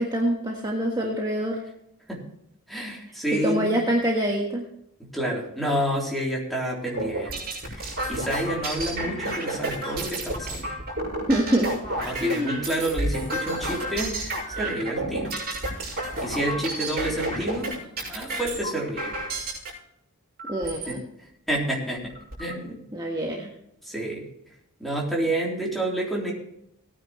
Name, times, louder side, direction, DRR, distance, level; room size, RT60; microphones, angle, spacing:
voice 1, 0.0-1.6 3.4-4.6 11.3-11.7 12.2-12.6 20.5-21.0 22.9-23.5, right 1 dB, 20° right, -1 dB, 1.5 m, -25 dB
voice 2, 2.7-3.7 5.0-7.4 7.6-10.7 12.0-15.4 15.9-19.2 20.9-22.1 22.4-22.8 23.8-26.3, right 1 dB, ahead, -3 dB, 3.6 m, -29 dB
sound 1, 6.9-19.7 20.4-20.9 21.5-21.6 21.9-22.5, right 1 dB, 45° right, 6.2 m, -31 dB
18.5 x 9.6 x 3.2 m, 0.76 s
head